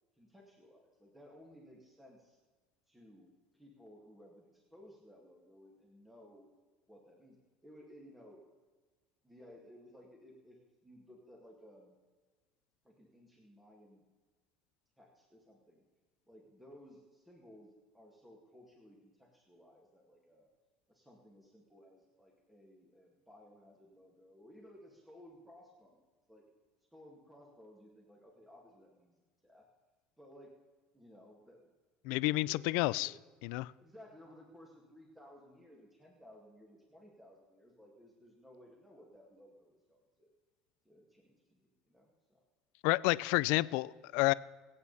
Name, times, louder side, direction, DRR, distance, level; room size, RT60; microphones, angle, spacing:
voice 1, 0.1-2.4 2.9-6.5 6.9-7.4 7.6-8.4 9.2-12.0 12.8-14.0 15.0-15.8 16.3-20.5 20.9-26.4 26.9-29.7 30.2-30.6 30.9-31.6 32.5-33.1 33.8-40.3 40.8-42.4, equal, 5° right, -1 dB, 2.2 m, -58 dB
voice 2, 32.1-33.1 33.4-33.7 42.8-44.3, left 21 dB, 80° left, 19 dB, 0.4 m, -30 dB
24.5 x 8.6 x 4.2 m, 1.3 s
cardioid pair, 130°, 2 cm